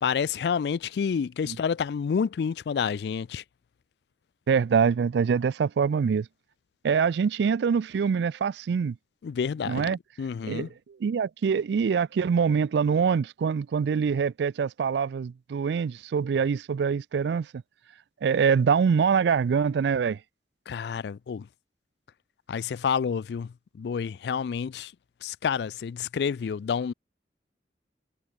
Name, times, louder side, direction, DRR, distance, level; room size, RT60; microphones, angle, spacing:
voice 1, 0.0-3.4 9.2-10.7 20.7-21.5 22.5-24.9 25.2-26.9, left 6 dB, 70° left, 0.3 m, -29 dB
voice 2, 4.5-6.3 6.8-9.0 9.6-10.0 10.4-17.5 18.2-20.2, right 6 dB, 75° right, 0.3 m, -24 dB
head